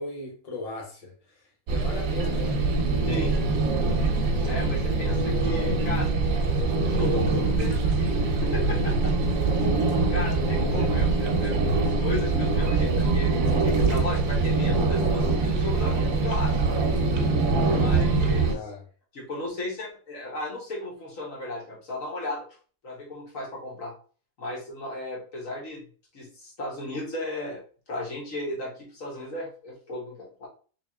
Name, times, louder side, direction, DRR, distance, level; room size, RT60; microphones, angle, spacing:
voice 1, 0.0-2.8 17.6-17.9 18.3-18.9, left 2 dB, 30° left, 1.2 m, -38 dB
sound 1, 1.7-18.6, right 3 dB, 80° right, 1.2 m, -23 dB
voice 2, 4.5-6.5 7.0-9.1 9.7-11.6 11.8-13.4 13.6-15.9 16.2-16.7 17.7-18.5 19.1-22.5 22.8-23.9 24.4-25.9 26.1-27.6 27.9-30.5, left 1 dB, 75° left, 1.7 m, -35 dB
3.4 x 3.1 x 3.5 m
omnidirectional pair, 1.4 m